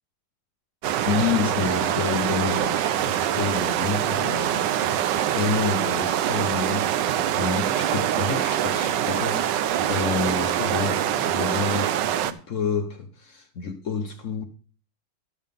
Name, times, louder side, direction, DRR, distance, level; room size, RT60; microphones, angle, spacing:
sound 1, 0.8-12.3, right 10 dB, 70° right, 1.1 m, -24 dB
voice 1, 1.1-4.9 5.3-14.4, left 6 dB, 60° left, 0.8 m, -29 dB
12.0 x 5.5 x 5.4 m
omnidirectional pair, 2.2 m